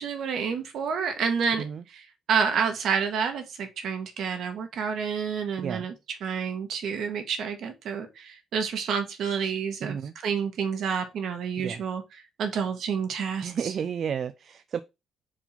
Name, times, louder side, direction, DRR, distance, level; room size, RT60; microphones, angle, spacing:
voice 1, 0.0-5.9 6.2-12.0 12.4-13.7, right 6 dB, 70° right, 1.4 m, -29 dB
voice 2, 9.8-10.1 11.6-11.8 13.4-14.8, right 7 dB, 55° right, 0.4 m, -32 dB
4.8 x 3.7 x 5.6 m
cardioid pair, 90°, 0 cm